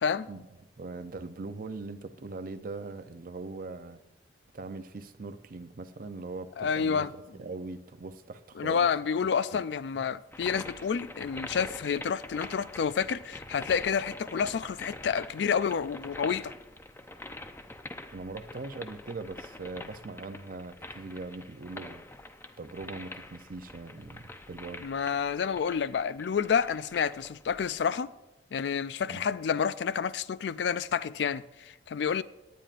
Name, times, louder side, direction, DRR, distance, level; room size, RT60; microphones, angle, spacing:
voice 1, 0.8-4.0 4.5-9.6 9.9-10.0 18.1-22.0 22.6-24.9 29.1-29.2, right 3 dB, 55° right, 0.6 m, -41 dB
voice 2, 6.6-7.1 8.6-16.5 24.8-28.1 28.5-32.2, left 6 dB, 75° left, 0.4 m, -29 dB
sound 1, 10.3-27.8, left 2 dB, 15° left, 0.5 m, -45 dB
18.0 x 10.0 x 2.5 m
head